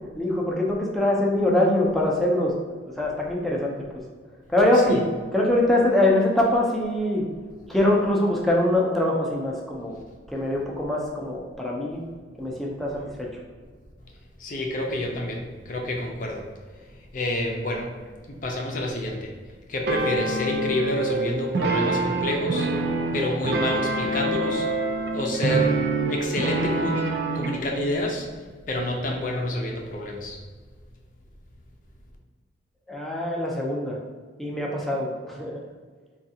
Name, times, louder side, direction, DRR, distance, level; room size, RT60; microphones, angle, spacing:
voice 1, 0.2-3.7 4.5-5.0 5.3-7.2 7.7-10.0 10.3-12.0 12.4-13.3 32.9-34.0 34.4-35.6, left 1 dB, ahead, -3 dB, 0.5 m, -23 dB
voice 2, 14.4-17.9 18.3-22.7 23.1-24.7 25.1-25.8 26.1-28.3 28.7-30.4, left 1 dB, 45° left, 1 dB, 0.6 m, -28 dB
sound 1, 19.9-27.6, right 2 dB, 65° right, 0.4 m, -26 dB
4.6 x 2.4 x 2.7 m, 1.5 s
head